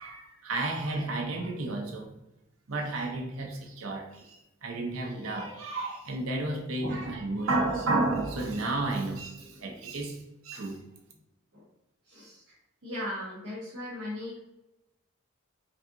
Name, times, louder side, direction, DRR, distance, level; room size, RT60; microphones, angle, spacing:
voice 1, 0.0-2.1 2.7-10.8, right 2 dB, 85° right, 1 dB, 0.7 m, -32 dB
voice 2, 6.8-7.1 9.5-9.9 11.5-11.6 12.0-12.4 12.8-14.4, left 1 dB, 65° right, -7 dB, 1.1 m, -38 dB
5.2 x 2.7 x 2.6 m, 0.91 s
head